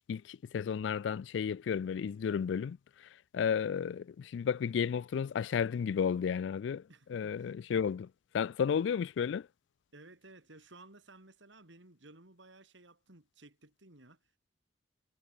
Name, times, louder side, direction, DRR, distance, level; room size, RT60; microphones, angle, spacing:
voice 1, 0.1-2.8 3.3-6.8 7.1-8.1 8.3-9.5, left 7 dB, 70° left, 0.3 m, -32 dB
voice 2, 6.9-7.5 9.9-14.2, right 2 dB, 70° right, 3.5 m, -56 dB
head